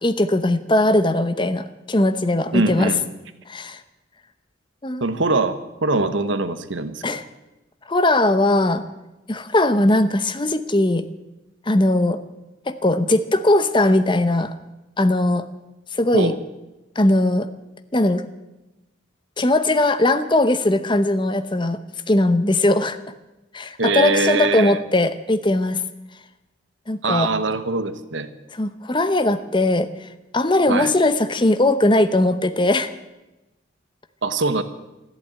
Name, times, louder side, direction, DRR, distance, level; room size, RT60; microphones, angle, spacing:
voice 1, 0.0-2.9 3.5-3.8 4.8-5.0 7.0-7.2 7.9-8.8 9.3-11.1 11.7-12.2 12.7-14.5 15.0-15.5 15.9-16.3 17.0-17.5 17.9-18.2 19.4-21.8 22.1-23.0 23.5-25.8 26.9-27.3 28.5-30.1 30.3-32.9, left 1 dB, 25° left, 11 dB, 0.8 m, -19 dB
voice 2, 2.5-3.0 5.0-7.2 16.1-16.4 23.8-24.8 27.0-28.3 30.7-30.9 34.2-34.6, right 3 dB, 70° right, 11 dB, 1.0 m, -22 dB
13.5 x 11.5 x 8.9 m, 1.0 s
head